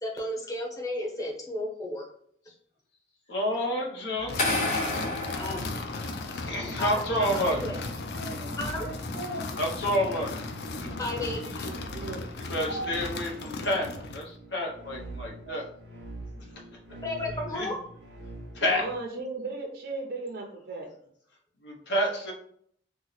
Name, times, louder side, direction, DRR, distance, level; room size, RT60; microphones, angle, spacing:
voice 1, 0.0-2.0 5.3-5.6 6.8-7.8 8.6-8.9 11.0-11.7 17.0-17.8, left 1 dB, 20° left, -2 dB, 0.7 m, -33 dB
voice 2, 3.3-4.3 6.3-7.7 9.6-10.3 12.4-15.6 16.4-16.5 17.5-17.7 18.5-18.8 21.6-22.3, equal, 85° left, -2 dB, 0.9 m, -29 dB
sound 1, 4.1-18.9, equal, 85° right, 0.8 m, -44 dB
sound 2, 4.3-14.3, left 3 dB, 65° left, 0.4 m, -36 dB
sound 3, 4.4-6.5, left 2 dB, 45° left, 1.1 m, -30 dB
voice 3, 8.1-9.5 11.0-11.2 11.4-12.3 12.7-13.0 15.4-15.6 18.6-20.9, right 2 dB, 55° right, 2 dB, 0.5 m, -37 dB
2.9 x 2.1 x 3.9 m, 0.64 s
head